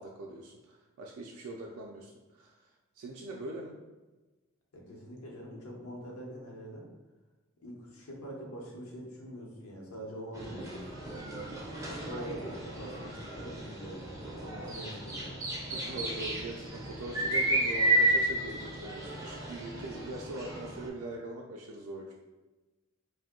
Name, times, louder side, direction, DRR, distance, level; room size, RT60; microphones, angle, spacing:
voice 1, 0.0-3.8 14.6-14.7 15.7-22.1, right 2 dB, 80° right, -1 dB, 0.4 m, -42 dB
voice 2, 4.7-6.8 7.6-10.8 11.9-15.4 19.7-19.8, equal, 85° left, -1 dB, 0.8 m, -44 dB
sound 1, 10.3-20.9, right 1 dB, 15° right, 0.4 m, -33 dB
2.7 x 2.1 x 3.6 m, 1.2 s
head